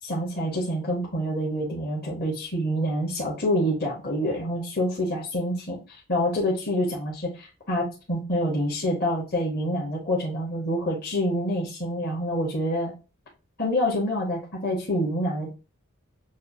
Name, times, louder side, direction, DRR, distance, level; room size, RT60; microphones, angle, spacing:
voice 1, 0.0-12.9 13.6-15.5, equal, 45° left, -3 dB, 1.0 m, -27 dB
6.3 x 2.3 x 2.6 m, 0.32 s
head